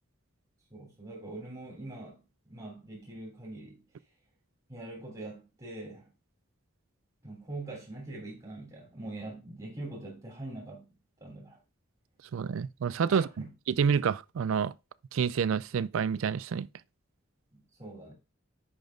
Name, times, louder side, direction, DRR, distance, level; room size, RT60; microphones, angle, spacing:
voice 1, 0.7-3.8 4.7-6.1 7.2-10.9 11.2-11.6 13.1-13.5 17.5-18.1, right 2 dB, 20° right, 2.8 m, -43 dB
voice 2, 12.3-13.3 13.7-14.7 15.1-16.7, right 6 dB, 75° right, 0.4 m, -28 dB
10.5 x 3.9 x 3.4 m
head